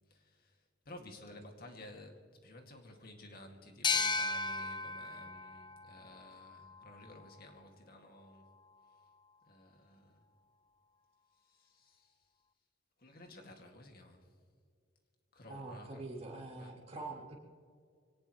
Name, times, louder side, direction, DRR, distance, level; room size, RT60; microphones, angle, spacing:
voice 1, 0.1-0.5 0.9-8.5 9.5-10.2 11.6-12.1 13.0-14.2 15.3-16.0 16.6-16.7, left 1 dB, 50° left, 3 dB, 2.3 m, -54 dB
sound 1, 3.8-7.2, left 4 dB, 25° left, 0.6 m, -36 dB
voice 2, 15.5-17.3, right 2 dB, 35° right, -4 dB, 3.4 m, -45 dB
23.5 x 18.5 x 3.2 m, 2.2 s
head